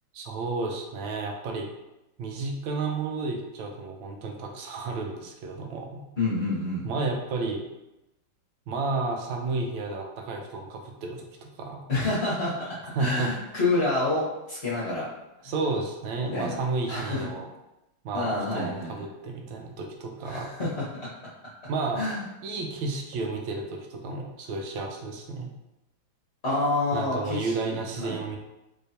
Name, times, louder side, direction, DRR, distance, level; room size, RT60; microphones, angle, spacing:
voice 1, 0.1-1.7 2.2-6.0 6.8-7.6 8.7-11.8 13.0-13.3 15.4-17.5 18.0-20.5 21.7-22.0 22.4-25.5 26.9-28.4, right 3 dB, 85° right, 2 dB, 1.4 m, -32 dB
voice 2, 6.2-6.8 11.9-15.1 15.4-15.5 16.2-16.6 16.9-17.3 18.1-18.9 20.2-21.1 21.9-22.2 26.4-28.2, left 2 dB, 45° left, -8 dB, 0.9 m, -28 dB
3.7 x 3.3 x 2.7 m, 0.94 s
omnidirectional pair, 2.1 m